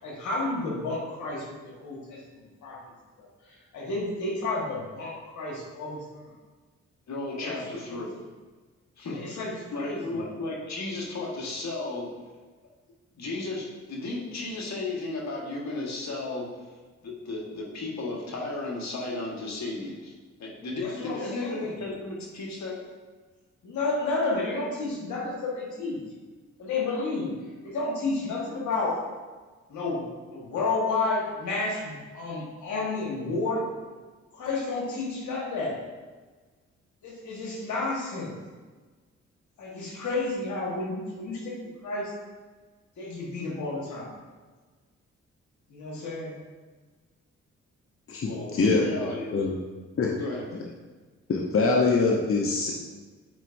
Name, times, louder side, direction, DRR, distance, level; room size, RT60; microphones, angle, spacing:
voice 1, 0.0-2.8 3.2-6.3 7.4-8.0 9.1-10.2 20.8-21.8 23.6-26.0 26.6-27.3 27.6-29.0 29.7-30.1 30.3-33.6 34.3-35.8 37.0-38.3 39.6-41.5 41.8-42.1 43.0-44.1 45.7-46.4, left 3 dB, 85° left, -3 dB, 1.6 m, -31 dB
voice 2, 7.1-8.2 9.0-9.2 9.7-12.1 13.2-16.5 17.0-20.1 20.4-22.8 48.2-49.3 50.2-50.7, left 2 dB, 65° left, -2 dB, 1.6 m, -34 dB
voice 3, 48.1-48.9 49.3-49.5 50.0-50.1 51.3-52.7, left 3 dB, 50° left, -1 dB, 0.9 m, -23 dB
9.1 x 4.4 x 2.6 m, 1.4 s
supercardioid pair, 55°, 29 cm